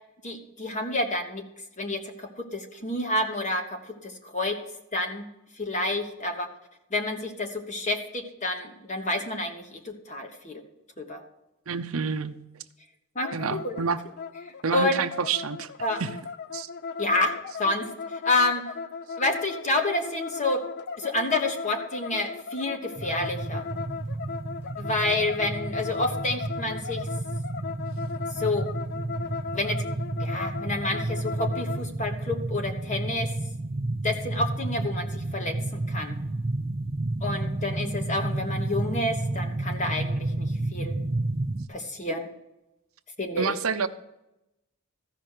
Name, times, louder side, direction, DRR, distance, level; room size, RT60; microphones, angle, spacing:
voice 1, 0.2-1.4 1.8-4.6 4.9-5.3 5.6-6.5 6.9-10.6 11.0-11.2 13.1-13.7 14.7-15.0 15.8-16.0 17.0-17.3 17.6-17.9 18.2-18.7 19.2-20.6 21.0-23.6 24.8-27.1 28.4-28.7 29.5-29.8 30.2-33.3 34.0-36.1 37.2-41.0 41.7-42.3 43.2-43.6, left 2 dB, 35° left, 4 dB, 1.2 m, -29 dB
voice 2, 11.7-12.3 13.3-14.0 14.6-15.7 16.0-16.2 16.5-16.7 43.4-43.9, right 5 dB, 75° right, 9 dB, 0.6 m, -28 dB
sound 1, 13.2-31.9, left 5 dB, 50° left, 0.5 m, -37 dB
sound 2, 23.0-41.7, right 2 dB, 30° right, 0.4 m, -31 dB
14.0 x 5.9 x 6.6 m, 0.90 s
head